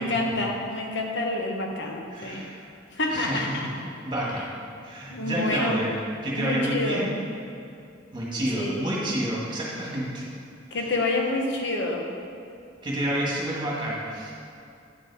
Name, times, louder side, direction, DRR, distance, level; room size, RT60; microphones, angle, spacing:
voice 1, 0.0-2.4 2.9-3.7 5.1-5.9 6.4-7.2 8.6-9.1 10.7-12.0, left 2 dB, 60° left, 0 dB, 1.0 m, -28 dB
voice 2, 2.1-2.7 3.1-3.4 4.0-4.5 4.8-6.0 6.2-7.2 8.1-10.3 10.7-10.8 12.8-14.3, right 1 dB, 25° right, -5 dB, 1.9 m, -29 dB
9.1 x 6.2 x 4.8 m, 2.6 s
head